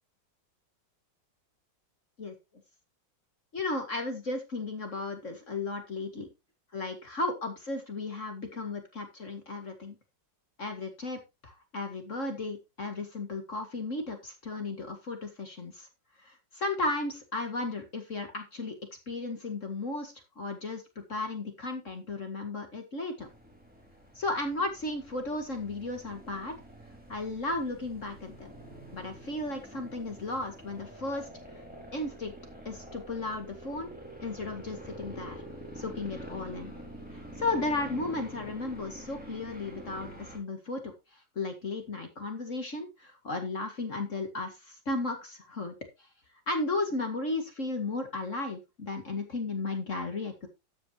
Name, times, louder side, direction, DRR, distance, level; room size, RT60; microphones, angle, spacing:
voice 1, 3.5-6.3 6.7-10.0 10.6-15.9 16.2-18.8 19.1-20.8 21.1-23.3 24.1-26.5 27.1-28.5 28.9-31.3 31.9-32.3 32.7-33.9 34.2-35.4 35.8-36.7 37.4-40.9 41.4-45.7 46.5-50.5, left 2 dB, 40° left, 5 dB, 2.2 m, -34 dB
sound 1, 23.2-40.4, right 1 dB, 5° right, 4.3 m, -46 dB
13.5 x 9.1 x 2.9 m, 0.26 s
omnidirectional pair, 2.0 m